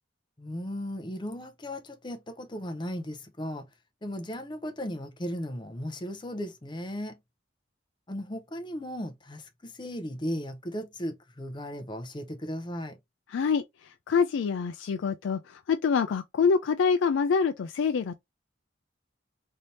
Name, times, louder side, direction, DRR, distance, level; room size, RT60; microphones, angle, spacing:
voice 1, 0.4-3.7 4.0-7.2 8.1-13.0, equal, 25° left, 0.6 m, -36 dB
voice 2, 13.3-13.6 14.1-18.2, left 5 dB, 75° left, 0.3 m, -25 dB
3.3 x 2.7 x 2.8 m
head